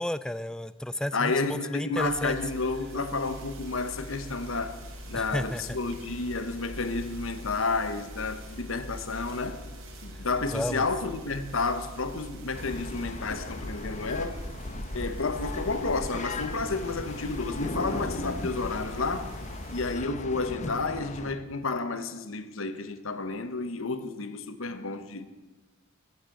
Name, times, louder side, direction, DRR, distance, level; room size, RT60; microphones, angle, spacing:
voice 1, 0.0-2.4 5.1-5.8 10.5-10.9, left 1 dB, 5° left, 0.4 m, -32 dB
voice 2, 1.1-4.8 5.1-9.6 10.0-14.4 14.9-19.3 19.7-25.3, left 3 dB, 75° left, 1.1 m, -31 dB
sound 1, 2.0-19.9, equal, 85° right, 3.9 m, -43 dB
sound 2, 12.5-21.3, left 2 dB, 35° left, 0.9 m, -37 dB
13.5 x 10.0 x 7.7 m
head